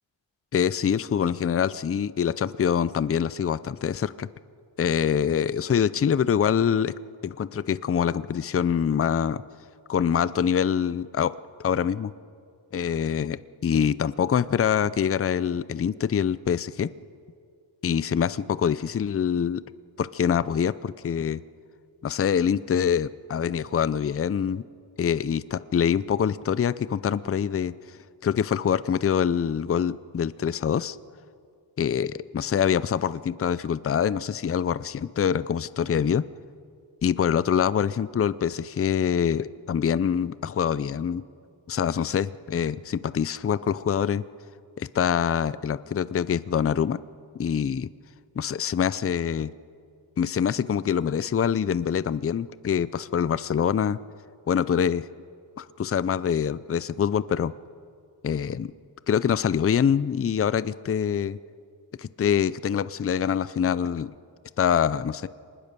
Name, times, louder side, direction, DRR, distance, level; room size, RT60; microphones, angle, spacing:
voice 1, 0.5-4.3 4.8-6.9 7.2-9.4 9.9-11.3 11.6-12.1 12.7-16.9 17.8-19.6 20.0-21.4 22.0-24.6 25.0-27.7 28.2-31.0 31.8-36.3 37.0-41.2 41.7-44.2 44.8-47.0 47.3-47.9 48.4-49.5 50.2-54.0 54.5-55.0 55.6-57.5 58.2-58.7 59.1-61.4 62.0-64.1 64.6-65.3, left 8 dB, 30° left, 17 dB, 0.5 m, -25 dB
25.0 x 20.0 x 6.8 m, 2.3 s
wide cardioid pair, 100°, 45 cm